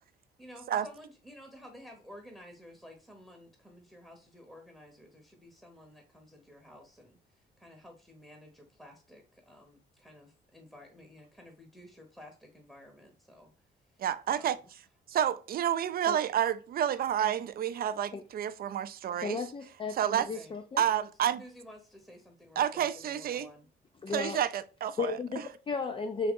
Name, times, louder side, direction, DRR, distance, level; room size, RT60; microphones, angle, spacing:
voice 1, 0.4-14.0 14.3-14.7 20.1-20.5 21.4-23.7, left 1 dB, ahead, 0.8 m, -53 dB
voice 2, 14.0-14.6 15.1-19.4 19.9-20.3 20.8-21.4 22.6-23.5 24.1-25.2, right 10 dB, 50° right, 0.4 m, -30 dB
voice 3, 19.2-20.8 24.0-24.4 25.0-26.3, left 4 dB, 25° left, 0.4 m, -34 dB
3.5 x 2.9 x 3.6 m
cardioid pair, 90°, 20 cm